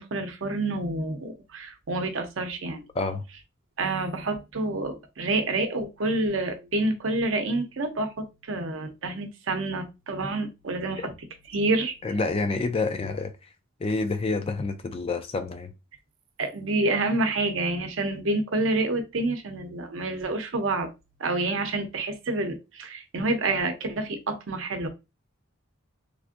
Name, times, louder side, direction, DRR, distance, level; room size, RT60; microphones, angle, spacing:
voice 1, 0.0-2.8 3.8-11.1 11.5-12.0 16.4-20.9 21.2-24.9, right 2 dB, 70° right, 0.7 m, -28 dB
voice 2, 12.0-13.3 13.8-15.7, left 3 dB, 30° left, 0.3 m, -28 dB
3.3 x 2.5 x 2.5 m
head